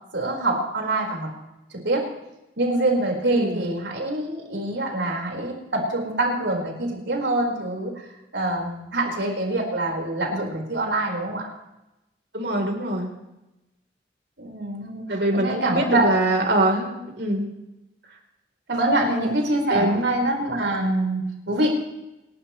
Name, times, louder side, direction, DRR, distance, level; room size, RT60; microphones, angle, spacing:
voice 1, 0.1-1.3 1.8-2.1 2.6-7.9 8.3-11.5 14.4-16.2 18.7-21.7, right 1 dB, 80° right, 0 dB, 4.8 m, -25 dB
voice 2, 3.3-3.7 12.3-13.1 15.1-17.5 19.7-20.0, right 1 dB, 65° right, 1 dB, 3.8 m, -24 dB
29.5 x 12.5 x 3.2 m, 0.96 s
head